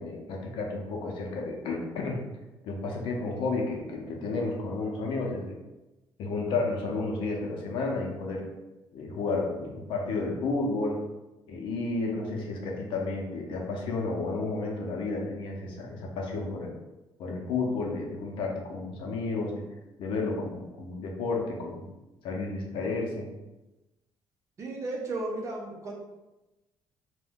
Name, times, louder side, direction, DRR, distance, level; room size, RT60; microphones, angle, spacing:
voice 1, 0.0-2.2 2.6-5.6 6.2-8.5 8.9-11.0 11.5-16.7 17.2-19.6 20.0-21.9 22.2-23.3, left 3 dB, 80° left, 0 dB, 0.7 m, -32 dB
voice 2, 24.6-25.9, right 2 dB, 35° right, -1 dB, 0.5 m, -34 dB
2.6 x 2.2 x 3.5 m, 1.0 s
cardioid pair, 175°, 9 cm